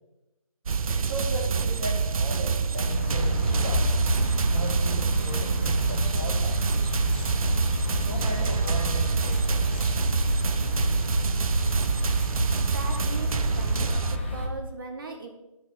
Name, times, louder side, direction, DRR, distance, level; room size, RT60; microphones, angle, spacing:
sound 1, 0.7-14.2, right 5 dB, 70° right, 0.4 m, -26 dB
voice 1, 0.9-3.9 4.4-6.6 8.0-10.1, right 1 dB, ahead, -20 dB, 1.3 m, -37 dB
sound 2, 2.8-14.5, left 1 dB, 20° left, 0.5 m, -29 dB
voice 2, 12.6-15.3, right 3 dB, 35° right, 3 dB, 0.9 m, -39 dB
12.0 x 4.2 x 2.6 m, 0.97 s
figure-of-eight pair, 165°, 19 cm